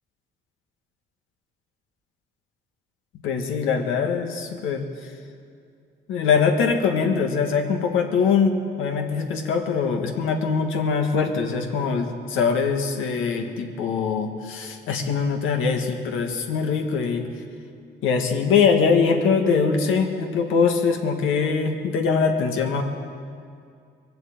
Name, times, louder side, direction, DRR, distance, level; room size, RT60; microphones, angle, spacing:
voice 1, 3.2-4.9 6.1-8.5 8.8-17.3 18.0-22.8, left 5 dB, 90° left, 4 dB, 1.6 m, -22 dB
21.5 x 7.8 x 7.9 m, 2.3 s
cardioid pair, 90°, 20 cm